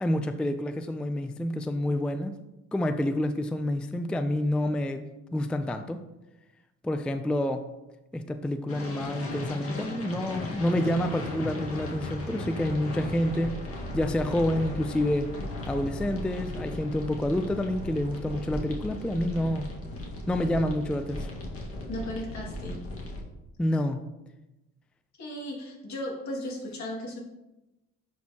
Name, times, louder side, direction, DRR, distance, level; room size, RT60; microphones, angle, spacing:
voice 1, 0.0-2.4 2.7-5.0 5.3-6.0 6.8-7.6 8.1-13.6 13.9-15.3 15.7-19.7 20.3-21.3 23.6-24.0, left 1 dB, 5° left, 8 dB, 0.3 m, -28 dB
sound 1, 8.7-23.2, left 1 dB, 50° left, 1.6 m, -36 dB
voice 2, 21.9-22.9 25.2-27.2, left 1 dB, 65° left, -1 dB, 2.1 m, -36 dB
10.5 x 4.3 x 2.8 m, 0.99 s
cardioid pair, 90°, 30 cm